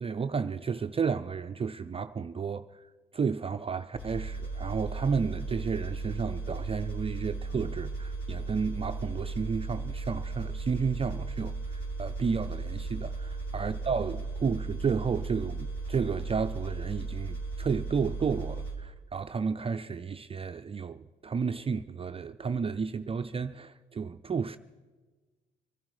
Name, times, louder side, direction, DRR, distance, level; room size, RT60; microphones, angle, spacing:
voice 1, 0.0-2.8 3.1-24.6, right 5 dB, 30° right, 0.5 m, -32 dB
sound 1, 4.0-18.7, right 3 dB, 75° left, 3.9 m, -36 dB
24.0 x 11.0 x 4.8 m
cardioid pair, 90°, 20 cm